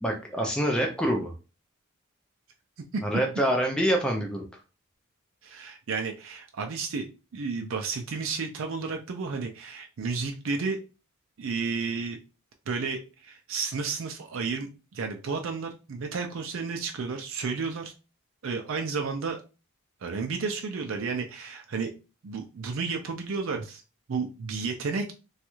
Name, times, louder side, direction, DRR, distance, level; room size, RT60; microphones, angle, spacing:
voice 1, 0.0-1.3 3.0-4.4, right 1 dB, 5° left, 1 dB, 0.4 m, -26 dB
voice 2, 5.4-10.8 11.4-12.2 12.7-17.9 18.4-19.4 20.0-21.9 22.2-23.8 24.1-25.1, right 4 dB, 65° right, 4 dB, 0.4 m, -32 dB
3.1 x 2.3 x 3.0 m, 0.32 s
head